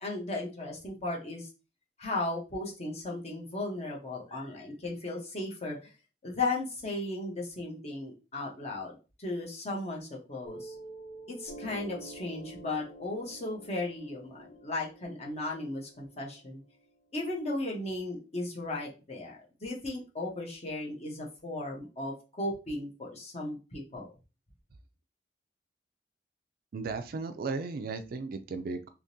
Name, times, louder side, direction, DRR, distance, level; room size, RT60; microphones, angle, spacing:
voice 1, 0.0-1.5 2.0-5.9 6.2-10.7 11.3-16.6 17.1-24.1, left 2 dB, 35° left, -1 dB, 0.9 m, -36 dB
Piano, 10.4-17.5, right 2 dB, 75° left, 0.8 m, -48 dB
voice 2, 26.7-28.9, right 4 dB, 55° right, 9 dB, 0.4 m, -35 dB
3.6 x 2.9 x 2.7 m, 0.31 s
head